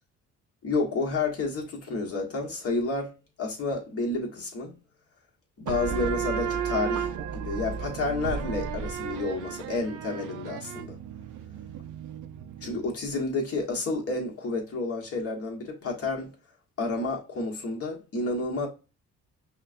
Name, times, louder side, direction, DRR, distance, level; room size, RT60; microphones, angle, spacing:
voice 1, 0.6-4.8 5.6-11.0 12.6-16.3 16.8-18.7, left 3 dB, 50° left, 1.4 m, -30 dB
sound 1, 5.7-13.0, right 7 dB, 80° right, 0.6 m, -34 dB
5.6 x 2.3 x 2.6 m
cardioid pair, 90°, 30 cm